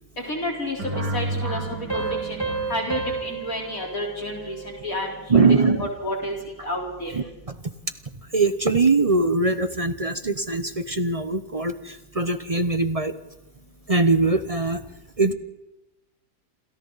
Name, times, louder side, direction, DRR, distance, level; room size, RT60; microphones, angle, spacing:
voice 1, 0.2-2.4 2.7-7.2, left 1 dB, 55° left, -1 dB, 4.7 m, -30 dB
sound 1, 0.8-3.7, right 1 dB, 80° right, 5.8 m, -32 dB
Piano, 1.9-5.2, right 4 dB, 10° left, 3.6 m, -31 dB
voice 2, 5.3-5.9 7.1-7.7 8.3-13.2 13.9-14.8 15.2-15.3, right 3 dB, 30° right, 10 dB, 0.7 m, -22 dB
28.5 x 27.0 x 4.1 m, 0.97 s
omnidirectional pair, 1.7 m